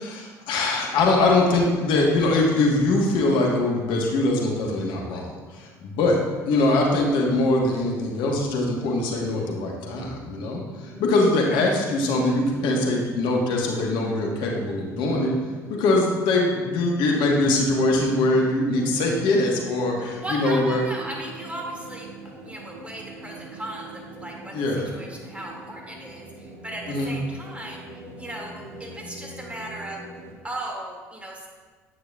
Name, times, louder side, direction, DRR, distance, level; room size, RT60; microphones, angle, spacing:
voice 1, 0.0-15.4 15.7-20.8 24.5-24.9 26.9-27.1, left 2 dB, 65° left, 0 dB, 1.3 m, -22 dB
sound 1, 10.6-30.4, right 2 dB, 60° right, 2.3 m, -42 dB
voice 2, 20.2-22.1 22.4-27.9 28.2-30.0 30.4-31.5, right 1 dB, 15° right, -1 dB, 2.2 m, -36 dB
9.9 x 8.5 x 2.4 m, 1.5 s
hypercardioid pair, 60°, 9 cm